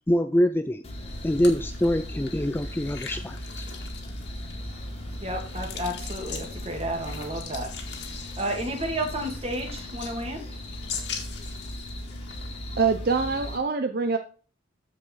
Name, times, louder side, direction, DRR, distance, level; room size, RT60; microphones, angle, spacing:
voice 1, 0.1-0.8 1.2-3.7, equal, 10° left, 9 dB, 0.3 m, -24 dB
sound 1, 0.8-13.6, left 1 dB, 30° left, 1.8 m, -38 dB
sound 2, 1.1-13.3, left 5 dB, 60° left, 1.9 m, -42 dB
voice 2, 4.6-11.0, right 1 dB, 30° right, 2 dB, 2.3 m, -33 dB
voice 3, 12.8-14.2, right 4 dB, 50° right, 8 dB, 0.6 m, -24 dB
13.5 x 4.8 x 4.0 m, 0.39 s
head